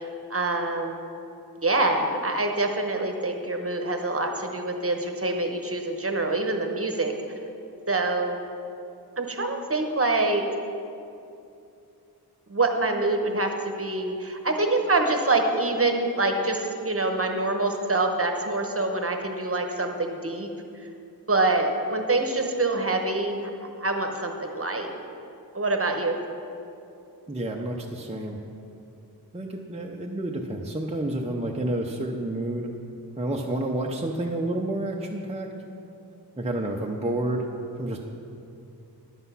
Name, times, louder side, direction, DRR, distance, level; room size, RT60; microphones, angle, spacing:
voice 1, 0.3-1.0 1.6-7.1 7.9-8.4 9.2-10.4 12.5-13.5 13.8-20.5 21.3-23.5 23.8-24.9 25.5-26.2, right 2 dB, 35° right, 4 dB, 1.1 m, -25 dB
voice 2, 27.3-28.4 29.3-32.7 33.2-35.5 36.4-37.4 37.8-38.0, right 1 dB, 15° right, 0 dB, 0.7 m, -29 dB
11.0 x 8.0 x 5.6 m, 2.6 s
wide cardioid pair, 90°, 39 cm